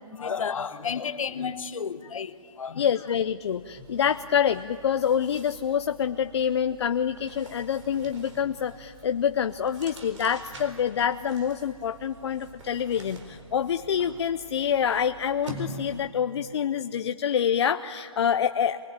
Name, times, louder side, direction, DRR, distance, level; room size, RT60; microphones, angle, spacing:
voice 1, 0.1-2.8, left 6 dB, 70° left, 1.2 m, -32 dB
sound 1, 2.3-2.5 2.8-16.2, right 1 dB, 60° right, 4.2 m, -46 dB
voice 2, 2.8-18.9, left 8 dB, 50° left, 0.6 m, -26 dB
24.0 x 21.0 x 8.9 m
hypercardioid pair, 155°, 18 cm